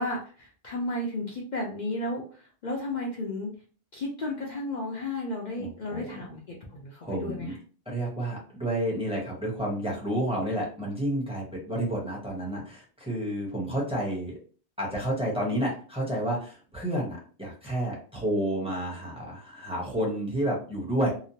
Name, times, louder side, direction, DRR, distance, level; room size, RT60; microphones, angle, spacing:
voice 1, 0.0-3.5 3.9-7.6, left 1 dB, 55° left, -2 dB, 0.6 m, -33 dB
voice 2, 5.6-6.2 7.0-7.6 7.9-14.4 14.8-21.1, right 1 dB, 5° right, -3 dB, 0.8 m, -30 dB
2.9 x 2.0 x 2.7 m, 0.40 s
omnidirectional pair, 1.1 m